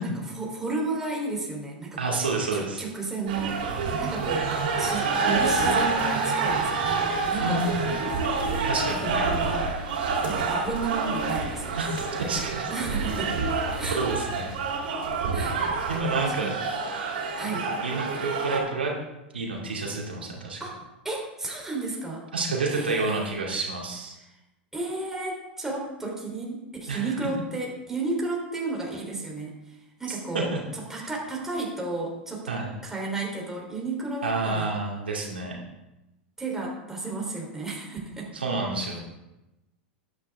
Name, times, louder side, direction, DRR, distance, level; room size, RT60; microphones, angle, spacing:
voice 1, 0.4-2.2 2.5-8.2 9.0-9.7 10.2-11.9 12.7-13.3 13.8-14.0 15.3-15.6 16.4-16.5 17.4-17.7 20.6-22.2 22.7-23.2 24.1-24.4 24.7-32.5 32.8-34.7 36.4-38.3 38.7-38.9, right 3 dB, 10° right, -2 dB, 3.4 m, -33 dB
voice 2, 2.0-2.8 7.4-8.0 8.6-9.3 9.9-10.2 11.8-12.7 14.0-14.5 15.9-16.5 17.8-18.9 19.3-20.6 22.3-24.2 26.9-27.1 30.1-30.6 32.5-32.7 34.2-35.6 38.3-39.0, right 3 dB, 85° right, -2 dB, 2.5 m, -29 dB
sound 1, 3.3-18.6, right 4 dB, 65° right, 3.5 m, -27 dB
12.5 x 9.7 x 3.6 m, 0.98 s
hypercardioid pair, 95°, 6 cm